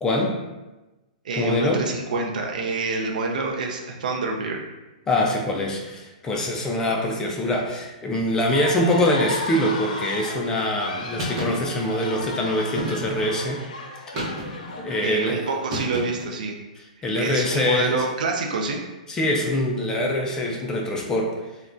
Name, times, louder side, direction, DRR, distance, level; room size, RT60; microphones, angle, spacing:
voice 1, 0.0-0.4 1.3-1.9 5.1-13.6 14.8-15.4 17.0-18.0 19.1-21.4, left 1 dB, 15° left, 0 dB, 0.3 m, -24 dB
voice 2, 1.2-4.6 15.0-16.6 17.1-18.8, right 3 dB, 80° right, 1 dB, 0.5 m, -27 dB
sound 1, 8.4-16.0, left 2 dB, 85° left, 0.5 m, -35 dB
sound 2, 11.2-11.6 12.8-13.3 14.1-14.8 15.7-16.3, right 1 dB, 45° right, 0.8 m, -30 dB
3.6 x 2.1 x 2.5 m, 1.1 s
hypercardioid pair, 140°, 4 cm